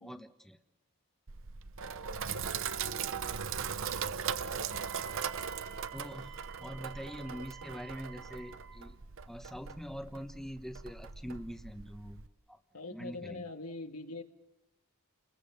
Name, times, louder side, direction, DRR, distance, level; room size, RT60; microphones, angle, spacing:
voice 1, 0.0-0.6 5.9-9.0 9.3-12.6 12.9-13.4, equal, ahead, 7 dB, 1.2 m, -44 dB
Sink (filling or washing), 1.3-12.3, right 7 dB, 60° right, 0.8 m, -39 dB
Wind instrument woodwind instrument, 4.7-8.8, right 9 dB, 85° right, 3.7 m, -50 dB
voice 2, 12.7-14.2, left 2 dB, 85° left, 6 dB, 1.9 m, -43 dB
30.0 x 21.5 x 7.0 m, 0.95 s
head